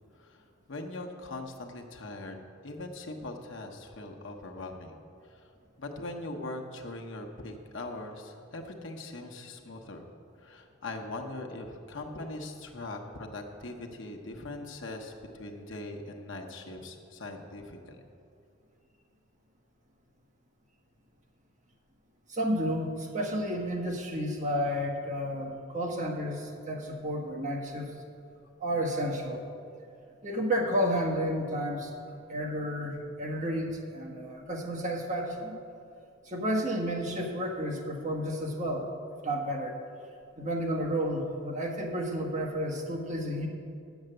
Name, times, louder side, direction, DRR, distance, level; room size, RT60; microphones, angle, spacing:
voice 1, 0.7-2.4 2.6-5.0 5.2-5.5 5.8-10.0 10.4-18.0, left 2 dB, 65° left, 2 dB, 1.0 m, -41 dB
voice 2, 22.3-27.9 28.6-29.4 30.2-35.5 36.2-38.9 39.2-39.8 40.4-43.5, equal, 35° right, 0 dB, 1.3 m, -31 dB
9.1 x 7.2 x 7.7 m, 2.5 s
head